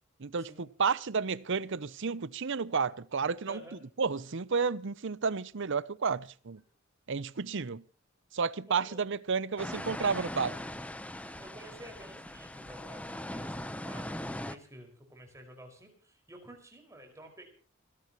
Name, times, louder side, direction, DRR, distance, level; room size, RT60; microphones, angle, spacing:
voice 1, 0.2-3.6 4.0-6.6 7.1-7.8 8.3-10.6, right 5 dB, 65° right, 0.7 m, -31 dB
voice 2, 3.5-3.8 8.7-9.0 11.3-17.5, right 1 dB, 15° right, 5.6 m, -51 dB
sound 1, 9.6-14.6, left 1 dB, 5° left, 0.9 m, -40 dB
29.5 x 12.5 x 3.1 m
head